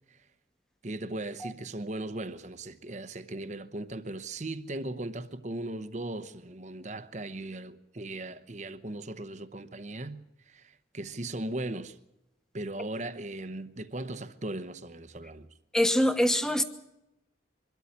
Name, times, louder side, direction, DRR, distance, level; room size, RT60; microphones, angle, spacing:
voice 1, 0.8-10.2 10.5-12.0 12.5-15.5, right 2 dB, 40° right, 0.9 m, -38 dB
voice 2, 15.7-16.6, left 1 dB, 5° left, 1.2 m, -24 dB
24.0 x 13.0 x 9.7 m
head